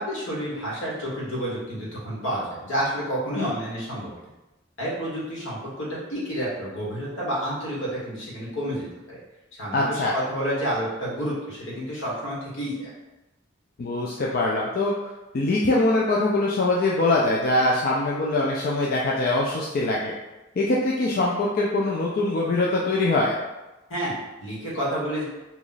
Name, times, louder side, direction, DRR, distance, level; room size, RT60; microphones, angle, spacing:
voice 1, 0.0-4.1 4.8-9.2 9.5-12.9 23.9-25.2, equal, 80° left, -6 dB, 1.4 m, -30 dB
voice 2, 9.7-10.1 13.8-14.9 15.3-20.1 20.6-23.4, left 2 dB, 50° left, -4 dB, 0.4 m, -23 dB
2.9 x 2.4 x 3.9 m, 1.0 s
head